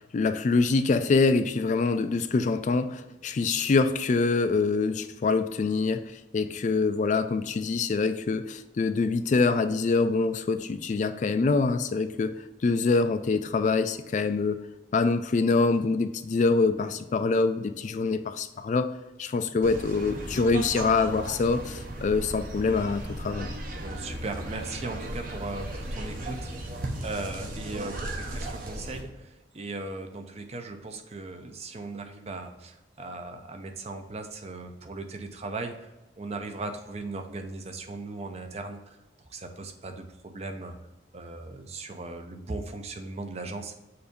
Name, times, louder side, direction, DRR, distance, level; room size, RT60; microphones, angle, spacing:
voice 1, 0.1-12.4 12.6-14.6 14.9-18.9 19.2-23.5, left 4 dB, 45° left, 10 dB, 0.3 m, -25 dB
sound 1, 19.6-29.0, right 1 dB, 50° right, 1.0 m, -36 dB
voice 2, 23.8-26.8 27.0-35.9 36.2-39.0 39.3-40.8 41.1-43.8, right 2 dB, 35° right, 6 dB, 0.6 m, -38 dB
6.8 x 2.7 x 5.1 m, 1.1 s
head